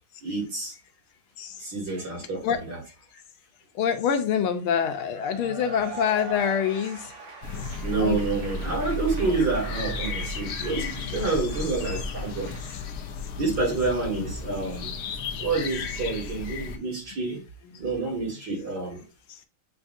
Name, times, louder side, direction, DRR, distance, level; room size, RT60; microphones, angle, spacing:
voice 1, 0.2-0.8 1.6-2.8 7.8-12.8 13.3-15.0 15.4-17.4 17.8-19.0, right 3 dB, 50° right, 2.3 m, -28 dB
voice 2, 3.8-7.0 7.8-8.2 9.3-9.5, left 8 dB, 80° left, 1.6 m, -26 dB
Cheering / Applause / Crowd, 5.1-12.8, right 5 dB, 70° right, 2.2 m, -42 dB
sound 1, 7.4-16.8, left 3 dB, 65° left, 0.9 m, -33 dB
7.8 x 2.6 x 2.4 m
omnidirectional pair, 2.3 m